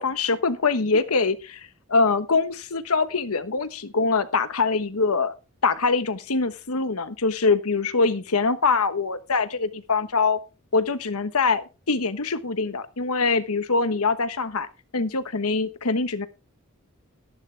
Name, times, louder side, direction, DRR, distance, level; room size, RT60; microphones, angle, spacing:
voice 1, 0.0-5.3 5.6-10.4 10.7-14.7 14.9-16.3, left 4 dB, 85° left, 12 dB, 1.2 m, -24 dB
13.0 x 11.0 x 3.4 m, 0.30 s
head